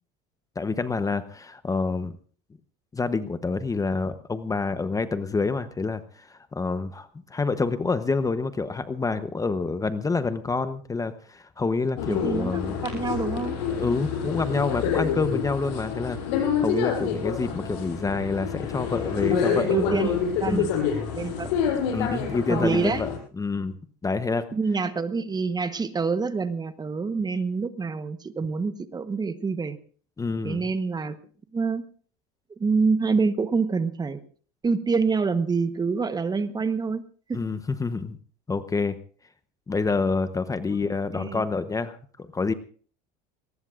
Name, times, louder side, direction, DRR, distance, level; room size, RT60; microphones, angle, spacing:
voice 1, 0.6-2.1 2.9-12.8 13.7-16.2 16.6-20.0 20.5-20.8 21.9-23.1 23.4-23.8 24.0-24.5 30.2-30.7 37.3-38.2 38.5-39.0 39.7-42.5, left 4 dB, 15° left, 11 dB, 0.9 m, -27 dB
sound 1, 12.0-23.2, left 7 dB, 85° left, 7.0 m, -27 dB
voice 2, 12.1-13.6 19.3-20.8 21.1-21.5 22.5-23.1 24.5-29.8 30.4-31.2 31.5-31.8 32.6-34.2 34.6-37.0 37.3-37.4 41.1-41.4, right 4 dB, 20° right, 11 dB, 1.1 m, -26 dB
22.5 x 19.0 x 2.5 m, 0.43 s
supercardioid pair, 115°, 21 cm